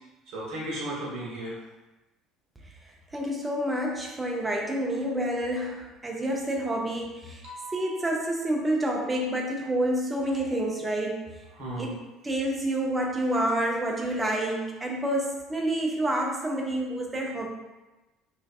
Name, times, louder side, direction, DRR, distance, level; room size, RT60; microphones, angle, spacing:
voice 1, 0.3-1.6 7.4-8.1 11.5-11.9, right 1 dB, 55° right, -6 dB, 0.9 m, -35 dB
voice 2, 3.1-7.4 7.7-11.2 11.8-12.0 12.2-17.5, right 1 dB, 20° right, 0 dB, 0.5 m, -28 dB
2.5 x 2.2 x 2.3 m, 1.1 s
figure-of-eight pair, 60°, 0 cm